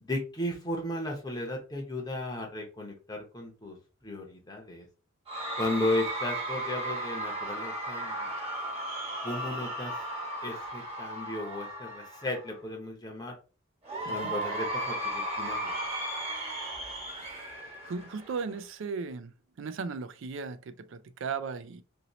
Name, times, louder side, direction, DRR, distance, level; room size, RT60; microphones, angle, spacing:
voice 1, 0.0-3.8 4.0-4.8 5.6-8.3 9.2-9.9 10.4-13.3 14.1-15.8, left 1 dB, 20° left, 0.8 m, -35 dB
Cheering / Crowd, 5.3-12.6 13.8-18.6, right 1 dB, 30° right, 1.0 m, -35 dB
voice 2, 17.8-19.3 19.6-21.8, right 5 dB, 65° right, 0.4 m, -36 dB
2.8 x 2.7 x 3.0 m
head